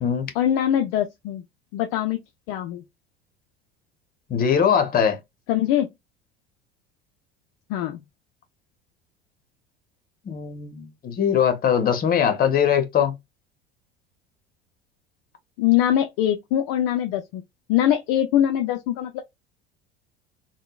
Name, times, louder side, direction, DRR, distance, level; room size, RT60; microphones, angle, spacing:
voice 1, 0.3-1.4 1.7-2.2 2.5-2.8 5.5-5.9 7.7-8.0 15.6-17.4 17.7-19.2, left 11 dB, 50° left, 0.5 m, -22 dB
voice 2, 4.3-5.2 10.3-13.1, left 8 dB, 30° left, 0.9 m, -21 dB
3.6 x 2.2 x 2.3 m
figure-of-eight pair, 70°, 29 cm